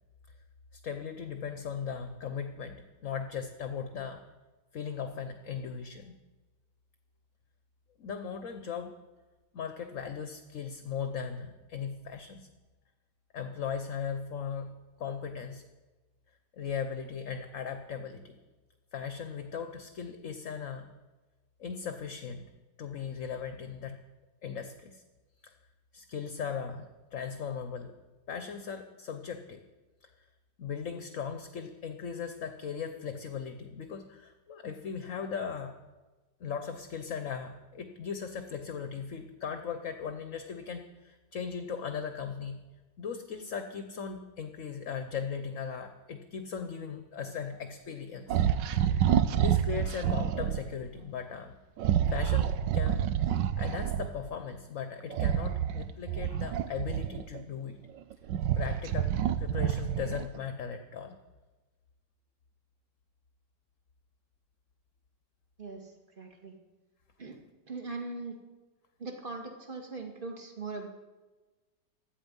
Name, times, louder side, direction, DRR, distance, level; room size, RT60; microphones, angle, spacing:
voice 1, 0.7-4.2 4.7-6.1 8.0-8.9 9.5-12.5 13.3-15.7 16.5-18.4 18.9-20.9 21.6-22.4 22.8-24.0 24.4-25.0 25.4-25.5 25.9-27.9 28.3-29.6 30.0-30.3 30.6-35.7 36.4-42.6 43.0-48.4 48.7-49.1 49.3-51.5 52.1-57.8 58.6-59.1 59.4-61.2, left 6 dB, 55° left, 7 dB, 1.2 m, -38 dB
sound 1, 48.3-50.6 51.8-54.1 55.1-57.4 58.0-60.4, right 10 dB, 85° right, 1.4 m, -28 dB
voice 2, 65.6-65.9 66.2-66.5 67.2-67.4 67.7-68.4 69.0-70.9, right 3 dB, 30° right, 3 dB, 2.1 m, -40 dB
16.0 x 12.0 x 5.4 m, 1.2 s
omnidirectional pair, 1.9 m